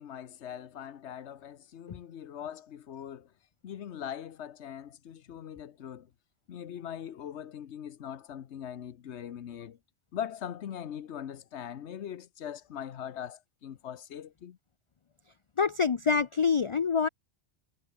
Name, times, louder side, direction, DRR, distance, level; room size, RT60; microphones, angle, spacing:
voice 1, 0.0-3.3 3.6-6.1 6.5-9.8 10.1-14.6, left 9 dB, 80° left, 1.2 m, -41 dB
voice 2, 15.6-17.1, left 5 dB, 40° left, 0.5 m, -26 dB
omnidirectional pair, 1.2 m